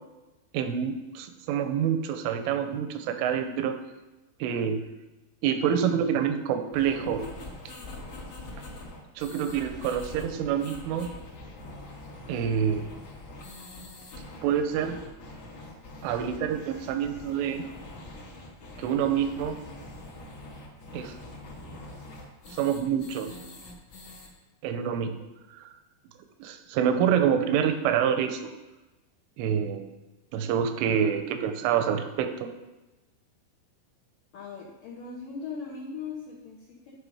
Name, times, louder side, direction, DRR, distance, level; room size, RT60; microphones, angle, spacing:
voice 1, 0.5-3.7 4.4-4.8 5.4-7.2 9.2-11.1 12.3-12.9 14.4-15.0 16.0-17.6 18.8-19.6 20.9-21.2 22.5-23.3 24.6-25.3 25.5-25.7 26.4-28.5 29.4-29.9 30.3-32.5, right 8 dB, 85° right, 7 dB, 3.1 m, -27 dB
sound 1, 6.7-24.3, left 2 dB, 65° left, 1.4 m, -44 dB
voice 2, 34.3-36.9, left 5 dB, 80° left, -5 dB, 1.9 m, -39 dB
13.0 x 5.5 x 5.0 m, 1.1 s
omnidirectional pair, 5.9 m